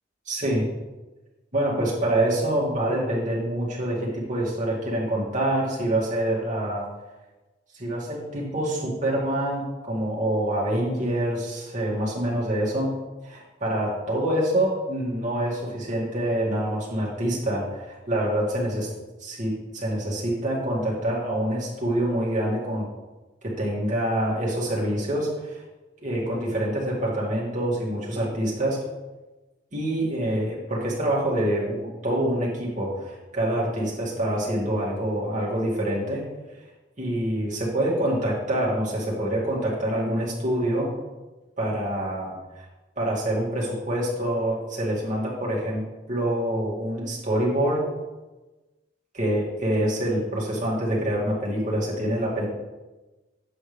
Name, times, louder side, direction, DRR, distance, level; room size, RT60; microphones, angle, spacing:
voice 1, 0.3-0.7 1.5-6.9 7.7-12.9 13.2-18.9 19.2-22.9 23.4-25.6 26.0-28.8 29.7-36.2 37.0-40.9 41.6-42.3 43.0-47.8 49.1-52.4, right 1 dB, 45° right, -5 dB, 2.3 m, -26 dB
7.9 x 6.2 x 3.4 m, 1.1 s
head